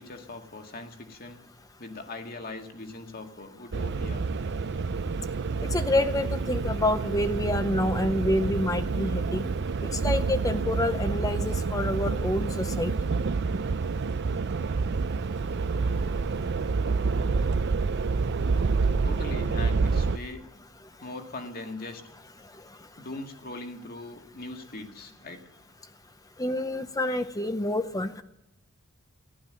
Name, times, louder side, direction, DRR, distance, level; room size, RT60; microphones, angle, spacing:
voice 1, 0.0-1.4 1.8-4.2 19.0-20.5 21.0-22.0 23.0-25.4, left 2 dB, 45° left, 4 dB, 1.9 m, -40 dB
sound 1, 3.7-20.2, right 4 dB, 55° right, 0.5 m, -28 dB
voice 2, 5.7-9.5 10.0-12.9 26.4-28.2, left 1 dB, 15° left, 10 dB, 0.7 m, -27 dB
15.0 x 12.0 x 7.6 m, 0.85 s
head